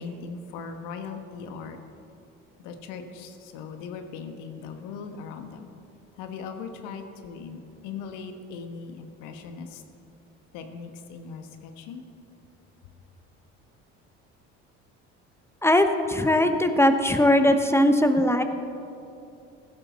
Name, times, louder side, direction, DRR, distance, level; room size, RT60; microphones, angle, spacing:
voice 1, 0.0-1.8 2.6-5.7 6.2-9.8 10.5-12.0, left 5 dB, 80° left, 6 dB, 1.3 m, -39 dB
voice 2, 15.6-18.4, left 1 dB, 10° left, 8 dB, 1.0 m, -20 dB
15.5 x 12.0 x 4.2 m, 2.6 s
supercardioid pair, 80°, 31 cm